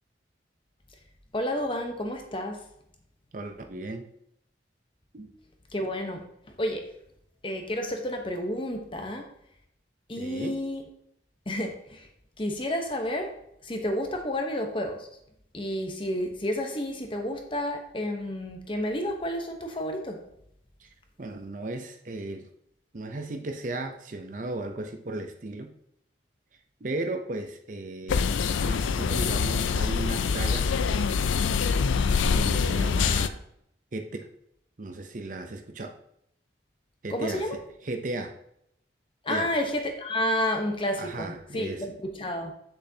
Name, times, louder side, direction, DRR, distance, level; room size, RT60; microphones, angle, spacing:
voice 1, 1.3-2.6 5.7-6.2 6.6-6.8 7.4-9.3 10.1-10.8 11.5-12.1 12.4-13.3 13.6-15.1 15.5-20.2 37.1-37.6 39.2-42.5, left 1 dB, 25° left, 4 dB, 0.9 m, -30 dB
voice 2, 3.3-4.1 5.1-5.4 9.0-9.2 10.2-10.6 20.8-20.9 21.2-22.5 22.9-25.7 26.8-28.2 28.6-30.7 32.0-33.4 33.9-34.3 34.8-35.9 37.0-38.3 39.3-39.5 41.0-41.9, right 2 dB, 45° right, 5 dB, 0.6 m, -36 dB
sound 1, 28.1-33.3, left 5 dB, 85° left, 0.4 m, -25 dB
8.2 x 6.6 x 2.8 m, 0.75 s
head